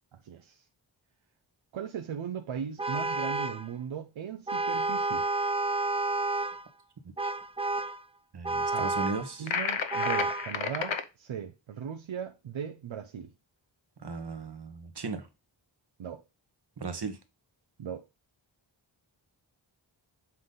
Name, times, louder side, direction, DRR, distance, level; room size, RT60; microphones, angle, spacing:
voice 1, 0.1-0.6 1.7-5.2 8.7-8.9 9.4-13.3 16.0-16.2 17.8-18.0, right 8 dB, 90° right, 0.7 m, -38 dB
Vehicle horn car horn honking, 2.8-3.7 4.5-6.6 7.2-8.0 8.4-9.3 9.9-10.5, right 2 dB, 15° right, 0.4 m, -30 dB
voice 2, 8.3-9.5 14.0-15.3 16.8-17.2, right 4 dB, 60° right, 1.4 m, -36 dB
sound 1, 9.5-11.0, left 6 dB, 85° left, 0.8 m, -31 dB
7.5 x 3.9 x 3.9 m
wide cardioid pair, 60°, 45 cm